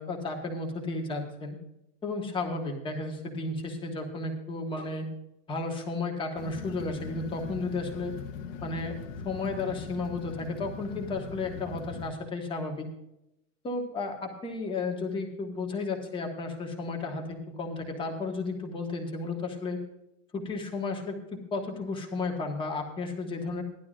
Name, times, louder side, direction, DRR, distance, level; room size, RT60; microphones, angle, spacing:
voice 1, 0.0-1.6 2.0-5.0 5.5-8.2 8.6-9.0 9.2-12.9 13.6-19.8 20.3-23.6, left 3 dB, 15° left, 2 dB, 1.4 m, -33 dB
sound 1, 6.3-12.1, left 5 dB, 75° left, 1.6 m, -40 dB
17.0 x 12.0 x 2.5 m, 0.86 s
supercardioid pair, 175°, 39 cm